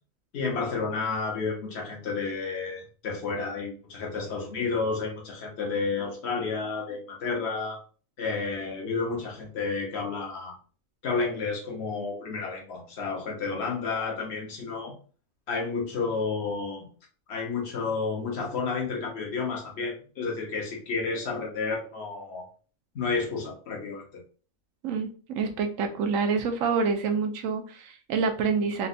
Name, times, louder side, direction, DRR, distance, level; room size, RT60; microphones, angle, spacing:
voice 1, 0.3-7.8 8.2-10.5 11.0-14.9 15.5-16.9 17.3-22.4 22.9-24.0, left 4 dB, 55° left, 0 dB, 1.2 m, -31 dB
voice 2, 24.8-28.9, right 5 dB, 75° right, 6 dB, 1.0 m, -27 dB
4.1 x 2.2 x 2.6 m, 0.39 s
omnidirectional pair, 1.4 m